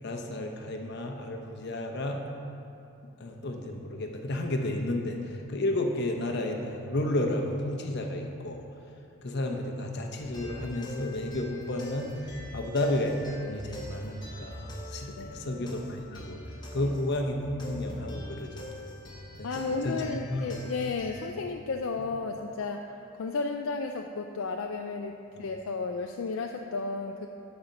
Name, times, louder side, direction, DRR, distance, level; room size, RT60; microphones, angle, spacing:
voice 1, 0.0-2.2 3.2-8.6 9.2-12.1 12.5-16.4 16.7-18.7 19.4-19.5 19.8-20.0 20.3-20.5, left 1 dB, 50° left, 2 dB, 0.8 m, -32 dB
sound 1, 10.2-21.3, left 1 dB, 20° left, 1.0 m, -43 dB
voice 2, 15.2-15.6 16.8-16.9 19.4-22.9 23.2-27.3, left 4 dB, 70° left, 3 dB, 0.4 m, -33 dB
12.5 x 4.4 x 5.2 m, 2.7 s
head